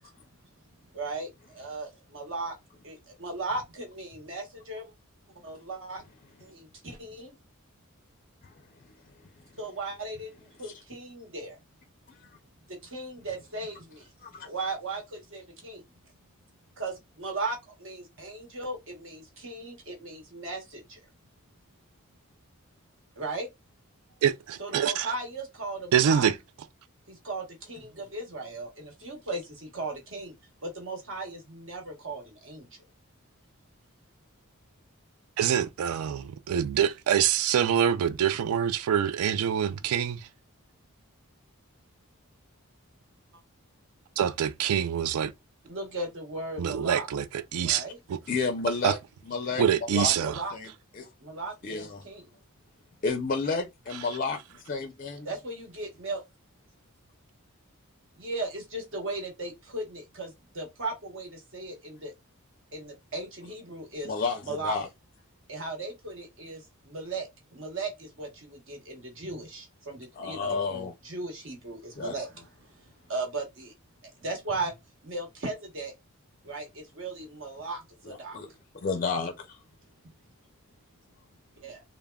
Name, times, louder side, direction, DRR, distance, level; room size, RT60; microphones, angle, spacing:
voice 1, 0.9-2.5 2.8-4.9 5.4-6.0 6.4-7.3 9.6-10.3 10.6-11.6 12.7-14.1 14.4-15.8 16.8-21.0 23.2-23.5 24.6-26.3 27.1-30.4 30.6-32.7 45.6-47.1 47.6-48.0 49.9-50.5 51.2-52.2 55.2-56.2 58.2-62.1 62.7-64.1 64.5-64.8 65.5-72.3 72.6-72.7 73.1-73.7 74.2-74.7 75.0-75.9 76.4-78.4 81.6-81.8, right 2 dB, 60° right, 1.1 m, -37 dB
voice 2, 8.4-9.4 10.6-10.7 12.1-12.4 14.2-14.5 48.3-49.0 49.3-49.6 49.9-50.2 50.5-51.1 51.6-52.1 53.0-55.3 64.0-64.9 70.1-70.9 72.0-72.1 78.0-79.6, left 4 dB, 40° left, 0.4 m, -32 dB
voice 3, 24.2-25.1 25.9-26.3 35.4-40.3 44.2-45.3 46.6-47.8 48.1-48.2 48.8-48.9 49.6-50.4, right 9 dB, 75° right, 0.3 m, -25 dB
3.4 x 2.0 x 2.2 m
head